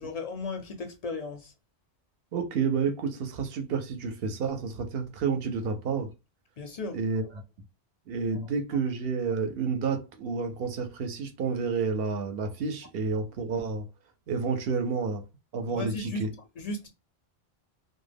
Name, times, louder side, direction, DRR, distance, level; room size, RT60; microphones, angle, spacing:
voice 1, 0.0-1.5 6.6-7.0 15.8-16.2 16.6-16.9, left 3 dB, 55° left, 0.4 m, -35 dB
voice 2, 2.3-6.1 6.9-7.2 8.1-13.9 14.3-15.2 15.5-16.3, right 5 dB, 70° right, 0.7 m, -30 dB
2.1 x 2.1 x 3.3 m
omnidirectional pair, 1.1 m